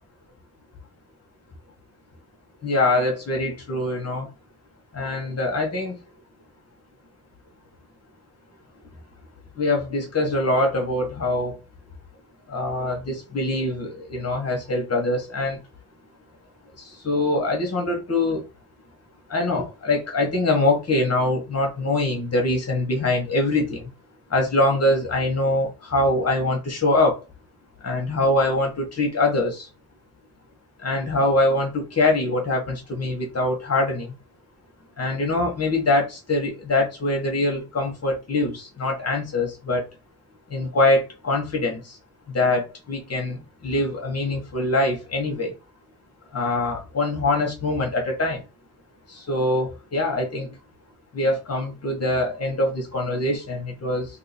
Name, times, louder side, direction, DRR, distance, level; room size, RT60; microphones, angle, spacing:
voice 1, 2.6-4.3 4.9-5.9 9.6-11.5 12.5-15.6 16.8-18.4 19.3-23.9 24.3-27.2 27.8-29.7 30.8-34.1 35.0-39.8 40.5-42.0 42.3-45.5 46.3-48.4 49.1-50.5 51.1-54.1, left 2 dB, 50° left, 1.3 m, -23 dB
2.9 x 2.9 x 4.3 m
wide cardioid pair, 130°, 33 cm